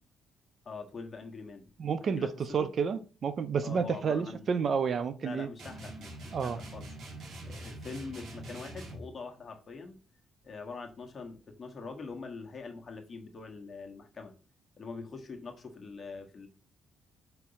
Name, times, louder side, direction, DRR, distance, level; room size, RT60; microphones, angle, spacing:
voice 1, 0.6-1.7 2.0-2.3 2.6-2.7 3.6-4.5 5.2-6.9 7.4-10.0 10.4-14.3 14.8-16.5, left 4 dB, 35° left, 1.3 m, -44 dB
voice 2, 1.8-5.5 6.3-6.6, right 6 dB, 50° right, 0.7 m, -30 dB
sound 1, 5.6-9.1, right 1 dB, 70° right, 2.3 m, -44 dB
4.5 x 3.9 x 5.6 m
cardioid pair, 90°, 0 cm